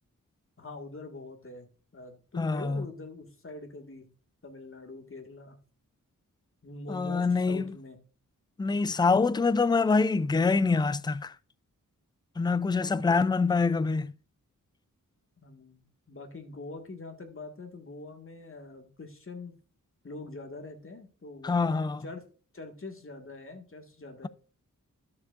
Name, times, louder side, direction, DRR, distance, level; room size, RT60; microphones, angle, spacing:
voice 1, 0.6-1.7 1.9-4.1 4.4-5.6 6.6-8.0 12.8-13.3 15.4-19.5 20.0-22.2 22.5-24.3, left 3 dB, 40° left, 1.8 m, -44 dB
voice 2, 2.4-2.8 6.9-7.7 8.6-11.3 12.4-14.1 21.4-22.0, left 4 dB, 15° left, 0.3 m, -25 dB
12.5 x 6.9 x 2.5 m
wide cardioid pair, 95°, 33 cm